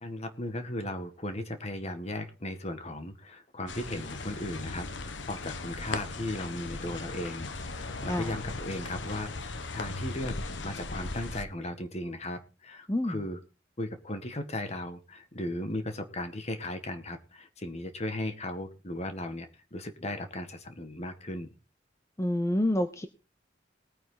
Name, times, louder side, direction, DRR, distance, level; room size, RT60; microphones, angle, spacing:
voice 1, 0.0-10.4 10.6-13.4 13.8-21.5, left 1 dB, 35° left, 7 dB, 1.8 m, -36 dB
sound 1, 3.7-11.4, left 3 dB, 85° left, 1.2 m, -38 dB
voice 2, 22.2-23.1, left 1 dB, 15° left, 9 dB, 0.8 m, -27 dB
19.5 x 9.2 x 4.0 m, 0.33 s
head